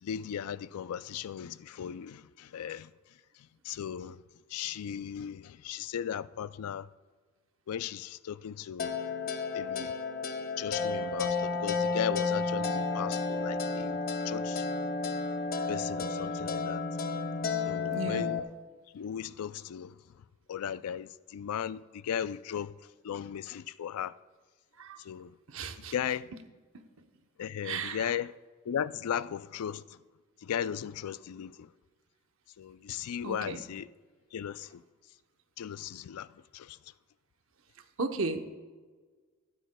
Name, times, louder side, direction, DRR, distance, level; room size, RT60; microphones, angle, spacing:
voice 1, 0.0-2.9 3.4-4.2 4.5-6.9 7.7-9.0 9.5-10.0 10.6-14.7 15.7-16.9 17.7-18.4 18.9-24.2 25.0-25.3 25.8-26.3 27.4-28.4 28.6-30.0 30.4-31.7 32.6-33.9 34.3-34.8 35.6-36.8, left 9 dB, 90° left, 0.4 m, -37 dB
sound 1, 8.8-18.4, left 4 dB, 40° left, 0.6 m, -32 dB
voice 2, 17.9-18.3 24.8-25.0 25.5-25.9 26.7-26.8 27.6-28.1 33.2-33.6 38.0-38.4, right 3 dB, 65° right, 0.8 m, -34 dB
14.5 x 12.0 x 2.2 m
head